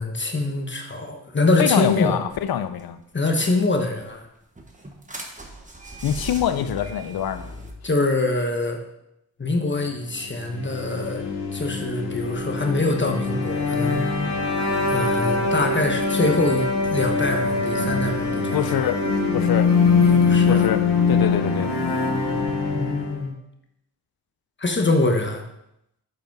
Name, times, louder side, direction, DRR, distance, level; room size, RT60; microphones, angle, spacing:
voice 1, 0.0-2.2 3.1-4.2 7.8-8.8 9.4-11.3 11.5-14.0 14.9-18.6 20.0-20.7 22.8-23.4 24.6-25.4, left 2 dB, 30° left, 4 dB, 1.1 m, -24 dB
voice 2, 1.6-3.0 6.0-7.5 18.5-19.0 19.3-19.7 20.5-20.8 21.1-21.7, left 10 dB, 65° left, 11 dB, 0.6 m, -24 dB
sound 1, 2.3-2.5 2.8-2.9 3.3-4.1 4.6-7.7, right 1 dB, 20° right, 1.3 m, -38 dB
sound 2, 10.3-23.3, left 4 dB, 90° left, 1.2 m, -23 dB
7.3 x 5.1 x 4.6 m, 0.82 s
cardioid pair, 70°, 39 cm